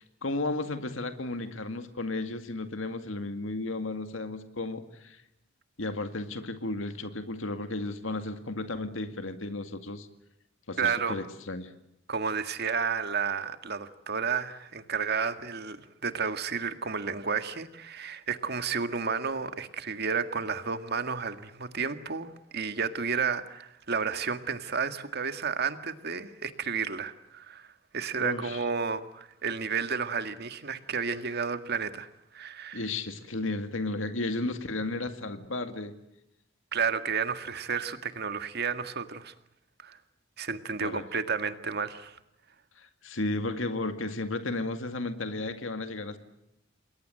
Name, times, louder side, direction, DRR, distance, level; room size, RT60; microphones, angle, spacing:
voice 1, 0.0-5.2 5.8-10.1 10.7-11.7 28.2-28.6 32.7-35.9 40.8-41.0 42.8-46.2, left 2 dB, 85° left, 8 dB, 2.2 m, -34 dB
voice 2, 10.8-11.2 12.1-32.8 36.7-39.3 39.8-40.0 40.4-42.2, right 6 dB, 55° right, 9 dB, 2.0 m, -31 dB
29.0 x 21.5 x 7.7 m, 0.83 s
head